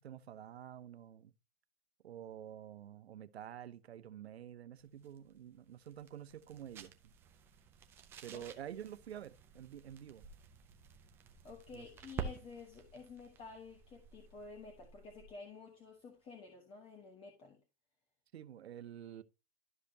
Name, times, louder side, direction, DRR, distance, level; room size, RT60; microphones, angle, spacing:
voice 1, 0.0-1.3 2.0-7.1 8.2-10.3 11.7-11.9 18.3-19.2, right 10 dB, 80° right, 0.9 m, -49 dB
sound 1, 4.8-15.4, right 6 dB, 10° right, 0.3 m, -51 dB
voice 2, 11.4-17.6, left 4 dB, 15° left, 1.2 m, -52 dB
12.5 x 5.0 x 2.8 m
hypercardioid pair, 140°, 32 cm